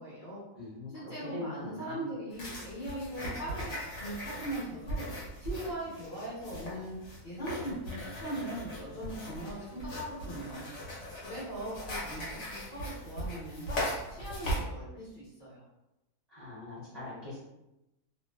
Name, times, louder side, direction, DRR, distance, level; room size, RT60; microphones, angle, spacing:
voice 1, 0.0-0.4 0.9-5.0 5.4-7.0 7.2-10.7 11.2-13.8 14.1-15.6, right 1 dB, 40° left, -10 dB, 0.8 m, -40 dB
voice 2, 0.5-2.1 16.3-17.4, left 2 dB, 45° right, -10 dB, 0.5 m, -42 dB
sound 1, 2.3-14.6, equal, 60° left, 1.0 m, -39 dB
2.5 x 2.2 x 2.2 m, 0.95 s
omnidirectional pair, 1.6 m